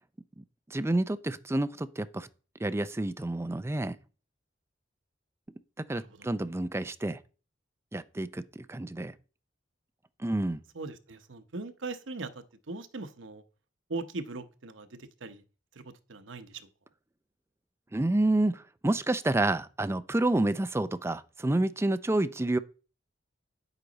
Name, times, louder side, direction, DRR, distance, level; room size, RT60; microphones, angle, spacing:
voice 1, 0.4-2.3 2.6-4.0 5.8-7.2 7.9-9.1 10.2-10.6 17.9-22.6, right 2 dB, 15° right, 0.5 m, -29 dB
voice 2, 5.9-6.3 10.8-13.4 13.9-15.4 16.1-16.7, right 3 dB, 85° right, 0.9 m, -40 dB
9.8 x 8.0 x 4.0 m
head